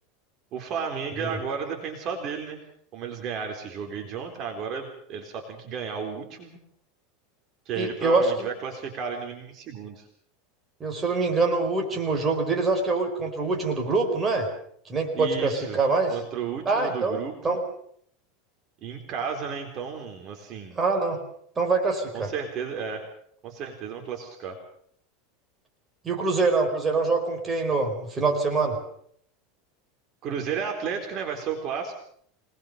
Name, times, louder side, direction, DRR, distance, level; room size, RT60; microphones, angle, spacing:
voice 1, 0.5-2.6 2.9-6.5 7.7-10.1 15.1-15.8 16.1-17.6 18.8-20.8 22.1-23.0 23.4-24.6 30.2-31.9, right 6 dB, 40° right, 4 dB, 4.0 m, -33 dB
voice 2, 7.8-8.5 10.8-14.5 14.9-16.2 16.6-17.2 17.4-17.6 20.8-21.2 21.6-22.3 26.0-28.8, right 3 dB, 20° right, 2 dB, 4.7 m, -24 dB
25.5 x 20.0 x 6.7 m, 0.65 s
supercardioid pair, 140°, 0 cm